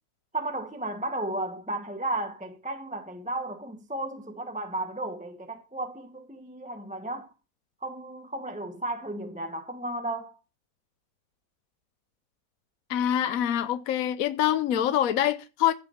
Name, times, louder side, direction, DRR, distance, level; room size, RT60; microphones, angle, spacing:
voice 1, 0.3-7.3 7.8-10.4, right 2 dB, 5° right, 1.1 m, -34 dB
voice 2, 12.9-15.7, left 11 dB, 65° left, 1.1 m, -25 dB
15.5 x 5.6 x 5.9 m
omnidirectional pair, 1.7 m